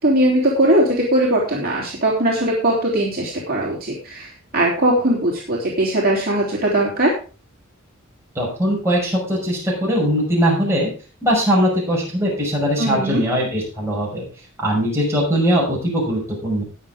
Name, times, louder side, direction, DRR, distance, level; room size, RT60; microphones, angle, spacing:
voice 1, 0.0-7.1 12.8-13.2, right 1 dB, 45° right, -4 dB, 3.4 m, -19 dB
voice 2, 8.3-10.9 11.2-14.2 14.6-16.6, equal, 10° right, -4 dB, 5.9 m, -20 dB
20.0 x 6.9 x 3.6 m, 0.35 s
head